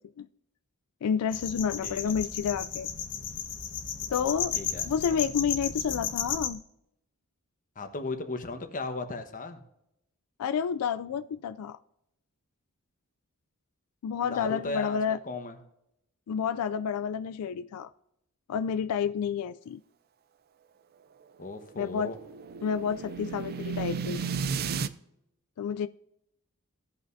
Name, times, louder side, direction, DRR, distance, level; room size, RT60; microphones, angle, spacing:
voice 1, 1.0-2.9 4.1-4.5 4.8-6.6 10.4-11.8 14.0-15.2 16.3-17.9 18.5-19.8 21.8-22.1 22.6-24.2 25.6-25.9, left 7 dB, 90° left, 12 dB, 0.3 m, -30 dB
sound 1, 1.3-6.5, left 7 dB, 60° left, 1.2 m, -34 dB
voice 2, 1.8-2.1 4.5-4.9 7.8-9.6 14.3-15.0 15.3-15.6 21.4-22.2, left 3 dB, 40° left, 6 dB, 1.1 m, -36 dB
sound 2, 21.6-24.9, right 6 dB, 45° right, 0.4 m, -33 dB
16.5 x 5.5 x 2.6 m, 0.81 s
head